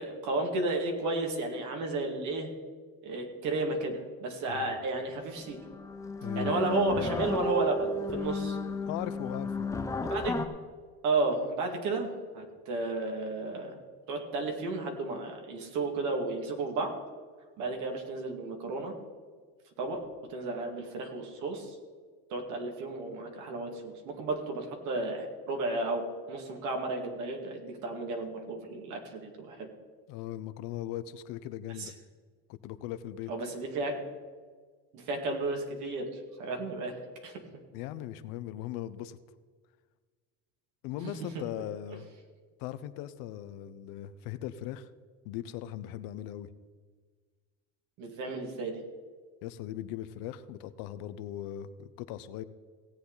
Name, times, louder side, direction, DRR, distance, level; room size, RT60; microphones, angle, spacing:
voice 1, 0.0-2.5 3.0-5.6 6.4-8.6 10.0-10.4 11.0-13.8 14.1-16.9 17.6-18.9 19.8-20.0 20.3-21.8 22.3-29.7 31.8-31.9 33.3-34.0 34.9-37.0 37.2-37.4 48.0-48.8, right 2 dB, 55° right, 2 dB, 2.2 m, -33 dB
sound 1, 5.0-5.2 5.5-10.5, left 3 dB, 10° left, 0.5 m, -33 dB
voice 2, 6.2-6.5 8.9-9.7 30.1-31.9 32.5-33.3 37.7-39.2 40.8-42.0 42.6-44.9 45.2-46.5 49.4-52.4, left 12 dB, 65° left, 13 dB, 0.8 m, -39 dB
17.5 x 8.3 x 4.0 m, 1.6 s
cardioid pair, 145°, 35 cm